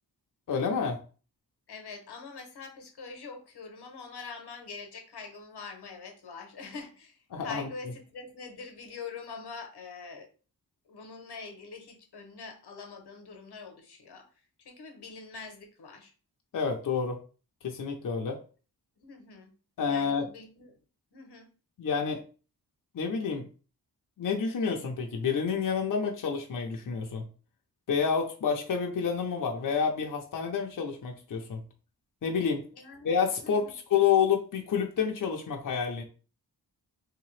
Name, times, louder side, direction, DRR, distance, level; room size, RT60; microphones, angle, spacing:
voice 1, 0.5-1.0 7.3-7.7 16.5-17.2 17.6-18.4 19.8-20.3 21.8-22.2 22.9-23.5 24.2-27.2 27.9-31.6 32.2-32.6 33.0-36.0, left 6 dB, 55° left, 2 dB, 0.6 m, -29 dB
voice 2, 1.7-10.3 10.9-14.3 14.6-16.1 19.0-19.5 19.8-20.7 21.1-21.5 32.7-33.1 33.4-33.8, left 4 dB, 85° left, 4 dB, 0.9 m, -44 dB
3.4 x 2.8 x 3.1 m, 0.37 s
wide cardioid pair, 110°, 39 cm